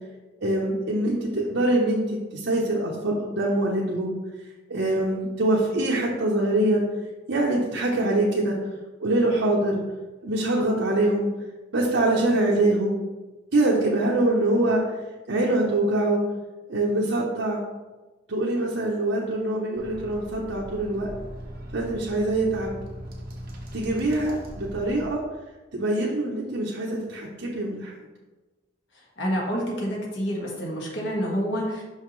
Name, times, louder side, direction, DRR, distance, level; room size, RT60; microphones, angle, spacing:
voice 1, 0.4-4.2 4.7-6.8 7.3-8.6 9.0-9.8 10.2-11.3 11.7-13.0 13.5-14.8 15.3-16.2 16.7-17.6 18.3-21.1 21.7-22.7 23.7-25.2 25.7-27.9, right 1 dB, 75° right, -4 dB, 0.8 m, -24 dB
sound 1, 19.7-25.1, equal, 50° right, 1.1 m, -40 dB
voice 2, 29.2-31.8, equal, 70° left, -2 dB, 1.6 m, -28 dB
5.7 x 5.6 x 3.1 m, 1.2 s
head